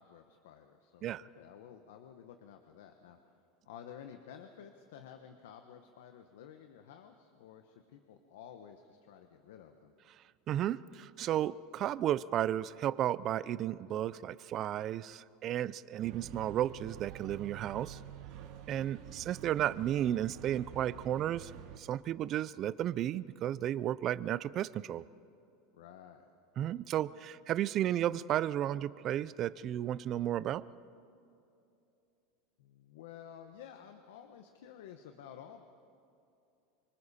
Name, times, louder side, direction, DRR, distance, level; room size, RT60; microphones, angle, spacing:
voice 1, 0.0-3.2 3.6-9.9 18.7-19.2 25.7-26.3 32.6-35.6, left 8 dB, 85° left, 6 dB, 1.1 m, -52 dB
voice 2, 10.5-18.0 18.7-21.5 21.8-25.1 26.6-30.6, right 11 dB, 35° right, 18 dB, 0.4 m, -33 dB
sound 1, 16.0-21.8, right 10 dB, 55° right, 1.4 m, -48 dB
26.0 x 24.0 x 4.3 m, 2.7 s
supercardioid pair, 145°, 0 cm